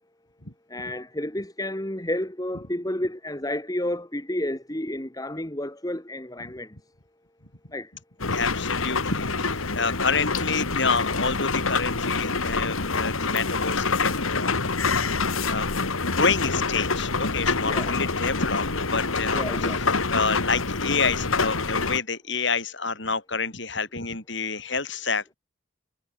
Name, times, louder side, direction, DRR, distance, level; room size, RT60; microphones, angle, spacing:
voice 1, 0.7-6.7 7.7-7.9 17.6-17.9 19.3-19.8, left 1 dB, 15° left, 1.7 m, -31 dB
sound 1, 8.2-22.0, left 4 dB, 85° left, 2.2 m, -26 dB
voice 2, 8.3-15.0 15.4-15.7 16.1-25.4, left 4 dB, 60° left, 6.4 m, -28 dB
head